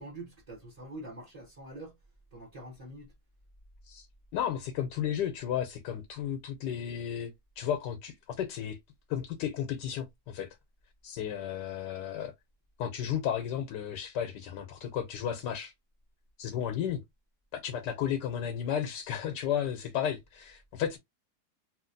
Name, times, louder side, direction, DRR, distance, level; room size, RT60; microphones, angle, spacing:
voice 1, 0.0-2.0 2.3-3.1, right 1 dB, 25° right, 1.0 m, -45 dB
voice 2, 4.3-7.3 7.6-8.8 9.1-10.6 11.0-12.3 12.8-15.7 16.4-17.0 17.5-21.0, left 9 dB, 85° left, 1.2 m, -33 dB
3.0 x 2.8 x 2.6 m
omnidirectional pair, 1.8 m